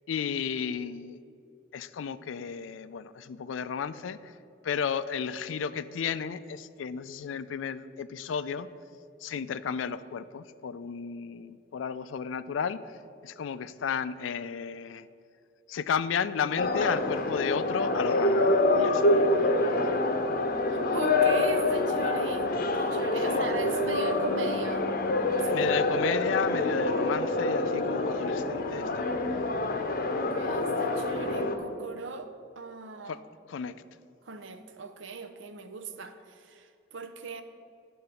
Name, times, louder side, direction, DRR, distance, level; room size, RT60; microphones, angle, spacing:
voice 1, 0.1-1.2 1.7-4.3 4.6-8.7 9.2-12.9 13.2-15.1 15.7-20.1 23.3-23.4 25.5-29.2 33.0-33.2 33.5-33.8, left 6 dB, 80° left, 15 dB, 0.4 m, -33 dB
sound 1, 16.6-31.6, left 2 dB, 50° left, 0.7 m, -26 dB
voice 2, 20.7-22.5 22.8-24.9 25.4-25.8 30.1-33.2 34.2-37.4, right 4 dB, 70° right, 8 dB, 0.6 m, -39 dB
11.5 x 3.9 x 6.9 m, 2.5 s
head